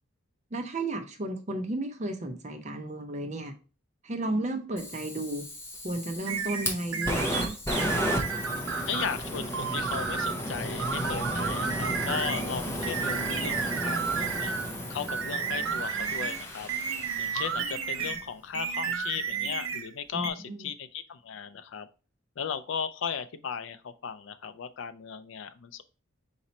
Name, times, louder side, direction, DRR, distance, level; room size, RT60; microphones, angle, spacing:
voice 1, 0.5-3.5 4.0-5.5 5.8-7.5 20.1-20.7, right 2 dB, 35° right, 6 dB, 0.6 m, -33 dB
Fire, 4.8-17.9, equal, 10° left, 0.6 m, -34 dB
sound 1, 6.3-9.2 9.5-10.4 10.8-12.5 12.8-14.7 15.1-18.3 18.5-19.9 20.2-20.3, right 6 dB, 80° right, 0.7 m, -32 dB
voice 2, 8.8-14.5 14.9-16.7 17.2-21.9 22.4-25.8, left 7 dB, 65° left, 12 dB, 0.4 m, -36 dB
4.0 x 3.0 x 4.1 m, 0.35 s
head